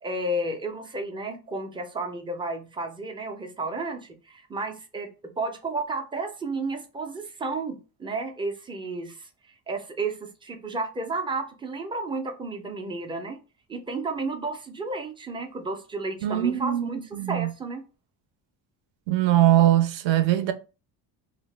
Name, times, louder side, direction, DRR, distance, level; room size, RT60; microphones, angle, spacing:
voice 1, 0.0-5.1 5.4-9.3 9.7-13.4 13.7-17.8, right 2 dB, 10° right, 0.3 m, -32 dB
voice 2, 16.2-17.5 19.1-20.5, right 13 dB, 70° right, 0.5 m, -21 dB
2.8 x 2.0 x 3.1 m
cardioid pair, 110°, 48 cm